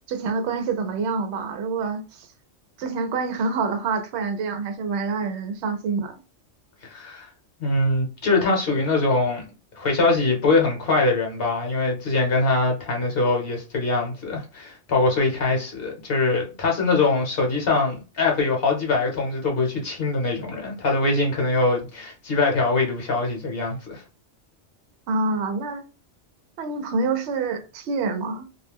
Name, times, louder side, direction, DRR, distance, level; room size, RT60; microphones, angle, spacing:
voice 1, 0.1-2.3 2.8-6.1 25.1-25.8 26.6-28.5, right 4 dB, 70° right, 0.8 m, -26 dB
voice 2, 6.9-7.3 7.6-9.5 9.8-24.0, left 3 dB, 55° left, 0.9 m, -23 dB
2.4 x 2.1 x 3.3 m
omnidirectional pair, 1.2 m